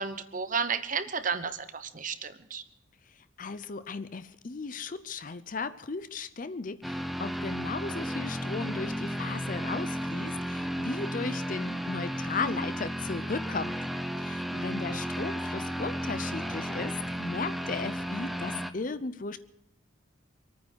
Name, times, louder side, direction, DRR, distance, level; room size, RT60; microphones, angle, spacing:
voice 1, 0.0-2.6 14.5-15.0, right 5 dB, 40° right, 12 dB, 1.0 m, -33 dB
voice 2, 3.1-13.8 14.2-19.4, left 4 dB, 40° left, 14 dB, 0.5 m, -36 dB
sound 1, 6.8-18.7, equal, ahead, 0.7 m, -33 dB
25.0 x 9.5 x 6.2 m, 0.85 s
head